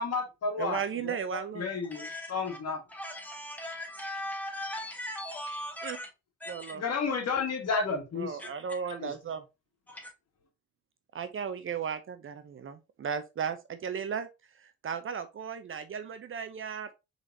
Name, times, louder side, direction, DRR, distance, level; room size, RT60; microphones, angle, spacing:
voice 1, 0.0-1.1 1.5-2.8 6.7-8.4 9.0-9.1, left 4 dB, 55° left, 1.7 m, -31 dB
voice 2, 0.6-1.7 5.8-6.0 6.5-6.8 8.1-9.4 11.1-14.3 14.8-16.9, right 7 dB, 45° right, 0.6 m, -35 dB
voice 3, 1.9-2.6 2.9-6.1 6.4-6.7 8.4-8.5 9.9-10.1, left 1 dB, 5° left, 1.8 m, -39 dB
4.8 x 4.0 x 2.7 m
cardioid pair, 90°, 30 cm